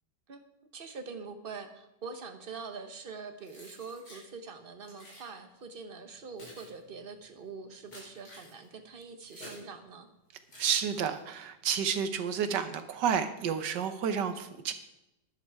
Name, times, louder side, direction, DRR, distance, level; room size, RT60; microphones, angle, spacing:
voice 1, 0.7-10.1, right 4 dB, 35° right, 7 dB, 1.1 m, -44 dB
Keys jangling, 3.4-4.3 4.8-5.3 6.0-9.7 10.5-11.4, left 1 dB, 55° left, 5.7 m, -51 dB
voice 2, 10.6-14.7, right 7 dB, 70° right, 10 dB, 1.6 m, -30 dB
12.0 x 11.0 x 4.8 m, 0.91 s
omnidirectional pair, 2.0 m